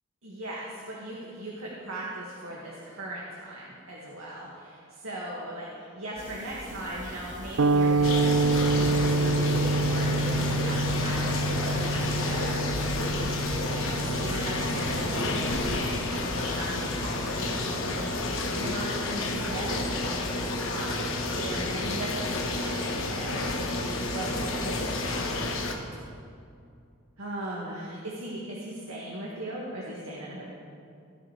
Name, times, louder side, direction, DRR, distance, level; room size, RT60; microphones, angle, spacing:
voice 1, 0.2-8.2 8.5-25.6 27.2-30.5, right 1 dB, 85° right, -5 dB, 2.1 m, -38 dB
sound 1, 6.2-15.8, right 1 dB, 40° right, 1.5 m, -41 dB
sound 2, 7.6-16.0, right 2 dB, 70° right, 0.4 m, -27 dB
sound 3, 8.0-25.7, left 2 dB, 70° left, 1.3 m, -30 dB
17.5 x 11.0 x 3.4 m, 2.4 s
head